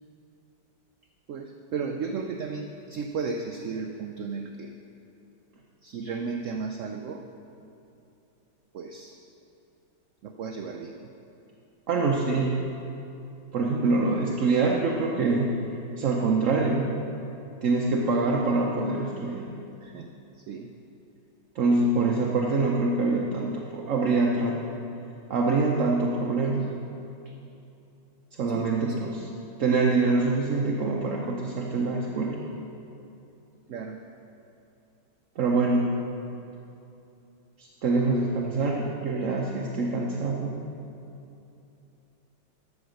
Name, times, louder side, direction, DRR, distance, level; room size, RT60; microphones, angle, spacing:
voice 1, 1.3-4.7 5.8-7.2 8.7-9.2 10.2-11.1 19.8-20.1 20.4-20.7 27.3-27.4 28.5-29.0 33.7-34.0, right 5 dB, 85° right, 4 dB, 0.6 m, -34 dB
voice 2, 11.9-12.6 13.5-15.5 16.0-16.9 17.6-19.5 21.5-24.6 25.3-26.7 28.4-29.3 29.6-32.4 35.4-36.0 37.6-40.6, right 3 dB, 55° right, -1 dB, 0.9 m, -25 dB
13.0 x 4.9 x 6.4 m, 2.8 s
omnidirectional pair, 1.9 m